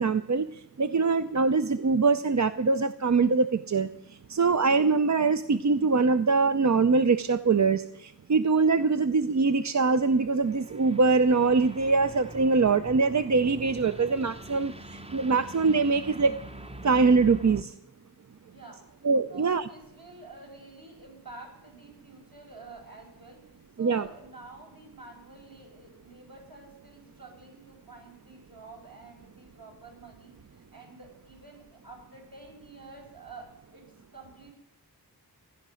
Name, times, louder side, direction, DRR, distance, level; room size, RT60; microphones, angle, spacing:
voice 1, 0.0-3.9 4.3-16.4 16.8-17.7 19.0-19.7 23.8-24.1, right 4 dB, 45° right, 11 dB, 0.6 m, -23 dB
sound 1, 9.9-17.6, right 1 dB, 15° right, 0.8 m, -44 dB
voice 2, 18.5-19.0 19.3-34.5, right 3 dB, 60° right, 0 dB, 5.4 m, -49 dB
16.5 x 11.5 x 6.3 m, 0.84 s
wide cardioid pair, 60°, 39 cm